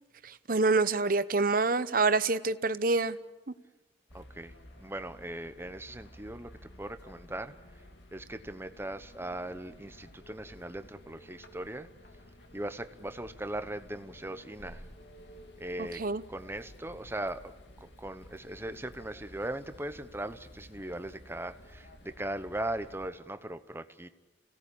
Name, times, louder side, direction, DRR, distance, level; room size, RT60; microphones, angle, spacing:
voice 1, 0.2-3.2 15.8-16.2, right 3 dB, 50° right, 13 dB, 0.9 m, -27 dB
sound 1, 4.1-23.1, left 1 dB, 70° left, 2.6 m, -53 dB
voice 2, 4.1-6.5 6.8-7.5 8.1-11.9 12.5-14.8 15.6-16.0 16.3-17.5 17.8-24.1, right 1 dB, 15° right, 10 dB, 1.1 m, -39 dB
29.5 x 17.5 x 8.6 m, 1.2 s
head